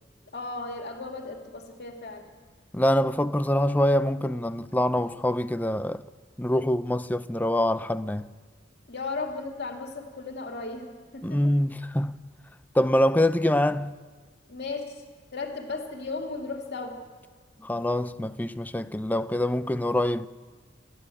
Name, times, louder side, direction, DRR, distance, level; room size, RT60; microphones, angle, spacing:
voice 1, 0.3-2.2 8.9-11.4 14.5-15.0 15.3-17.0, left 3 dB, 55° left, 2.3 m, -35 dB
voice 2, 2.7-6.0 6.4-8.3 11.2-12.1 12.7-13.9 17.6-20.3, left 1 dB, 10° left, 0.5 m, -25 dB
28.0 x 11.5 x 8.4 m
head